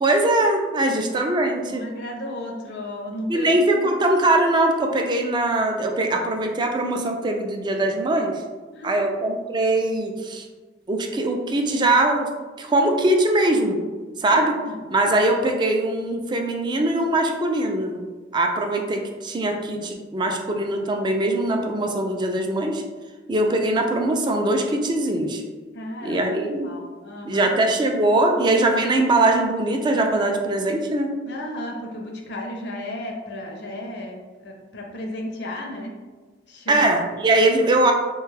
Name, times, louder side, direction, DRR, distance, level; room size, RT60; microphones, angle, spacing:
voice 1, 0.0-1.8 3.3-8.4 8.8-10.5 10.9-12.3 12.6-13.8 14.2-14.5 14.9-18.1 18.3-22.8 23.3-25.4 26.0-26.7 27.2-31.1 36.7-37.9, right 2 dB, 25° right, 3 dB, 0.3 m, -21 dB
voice 2, 0.7-1.1 1.7-3.9 8.7-9.1 14.3-14.8 18.6-18.8 25.7-26.2 26.6-27.6 31.2-35.9 36.5-36.9, left 1 dB, 65° left, 1 dB, 0.5 m, -34 dB
3.1 x 2.2 x 3.2 m, 1.3 s
head